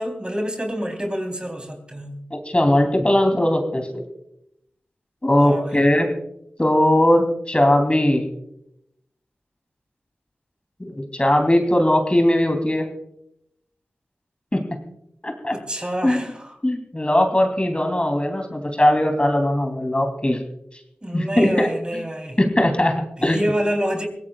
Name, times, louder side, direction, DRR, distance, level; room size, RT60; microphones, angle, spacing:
voice 1, 0.0-2.2 5.4-5.9 15.5-16.5 21.0-22.4 23.2-24.1, equal, 20° right, 4 dB, 3.7 m, -27 dB
voice 2, 2.3-3.9 5.2-6.1 6.6-8.2 10.8-12.9 14.5-14.8 15.2-15.6 16.0-16.2 16.6-20.4 21.1-21.7 21.9-22.0 22.4-23.4, left 1 dB, 25° left, 4 dB, 3.2 m, -19 dB
23.0 x 17.0 x 2.4 m, 0.79 s
cardioid pair, 40°, 4 cm